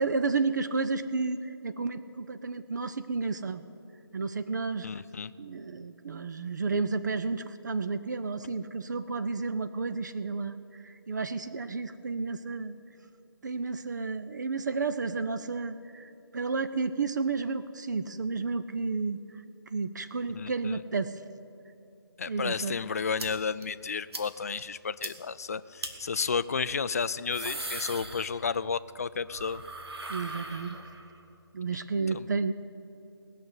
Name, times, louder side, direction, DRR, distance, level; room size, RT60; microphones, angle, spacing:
voice 1, 0.0-3.6 4.1-4.9 5.4-12.7 13.4-19.2 19.7-21.2 22.3-22.8 30.1-30.8 31.5-32.5, right 4 dB, 45° right, 11 dB, 0.5 m, -31 dB
voice 2, 4.8-5.3 20.3-20.8 22.2-29.6 32.1-32.3, left 5 dB, 35° left, 15 dB, 0.3 m, -32 dB
sound 1, 23.2-23.3 23.6-23.7 24.1-24.3 24.6-24.7 25.0-25.1 25.8-25.9 27.0-28.7 29.0-31.2, right 2 dB, 75° right, 1.9 m, -39 dB
19.0 x 6.7 x 9.5 m, 2.9 s
figure-of-eight pair, 160°, 13 cm